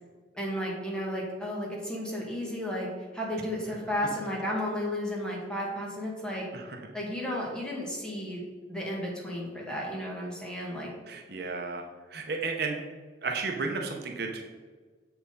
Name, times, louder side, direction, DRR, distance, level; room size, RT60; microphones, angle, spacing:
voice 1, 0.3-6.5 6.9-8.4 8.7-10.9, equal, 5° left, -4 dB, 1.7 m, -33 dB
voice 2, 11.1-12.8 13.2-14.4, right 4 dB, 55° right, 2 dB, 0.8 m, -33 dB
7.3 x 4.6 x 5.3 m, 1.4 s
head